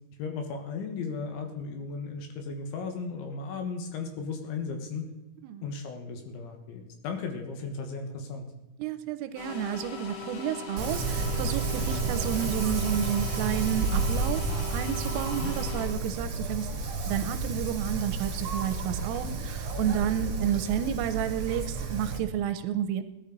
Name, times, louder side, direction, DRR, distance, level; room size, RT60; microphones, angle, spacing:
voice 1, 0.2-5.1 5.6-8.5 15.3-15.5, left 4 dB, 70° left, 4 dB, 3.4 m, -36 dB
voice 2, 8.8-14.4 14.7-16.7 17.1-23.0, right 10 dB, 85° right, 10 dB, 3.1 m, -31 dB
sound 1, 9.4-15.9, left 5 dB, 90° left, 5.1 m, -40 dB
Wind, 10.8-22.2, right 3 dB, 50° right, 2.0 m, -31 dB
17.0 x 11.5 x 3.9 m, 1.0 s
omnidirectional pair, 6.0 m